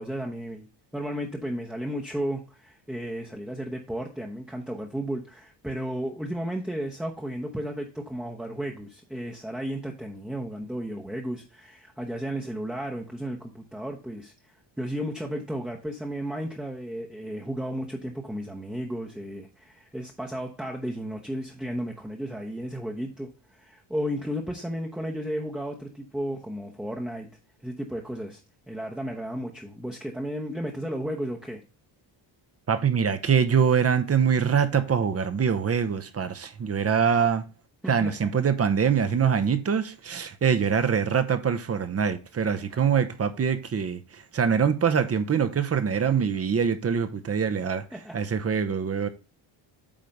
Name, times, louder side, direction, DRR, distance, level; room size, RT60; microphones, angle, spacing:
voice 1, 0.0-27.3 27.6-28.4 28.7-31.6 37.8-38.3 47.9-48.2, equal, ahead, 0.9 m, -34 dB
voice 2, 32.7-37.4 37.9-49.1, right 7 dB, 30° right, 0.8 m, -24 dB
8.8 x 3.2 x 5.3 m
cardioid pair, 115°, 46 cm